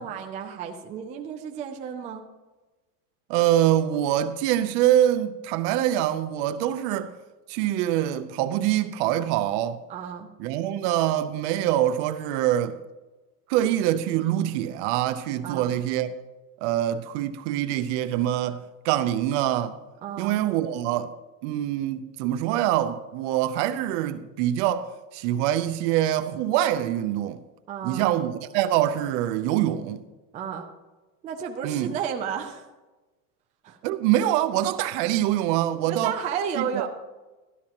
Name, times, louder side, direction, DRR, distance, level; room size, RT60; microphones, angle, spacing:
voice 1, 0.0-2.3 9.9-10.3 15.4-15.7 20.0-20.4 27.7-28.1 30.3-30.7 31.2-32.7 33.6-33.8 35.9-36.9, right 7 dB, 15° right, 0.4 m, -32 dB
voice 2, 3.3-7.1 7.5-9.8 10.4-12.8 13.5-16.1 16.6-19.8 20.2-21.1 21.4-27.4 27.8-30.0 31.6-31.9 33.8-36.1 36.6-36.9, right 12 dB, 50° right, 0.7 m, -24 dB
12.5 x 12.5 x 2.9 m
supercardioid pair, 150°, 46 cm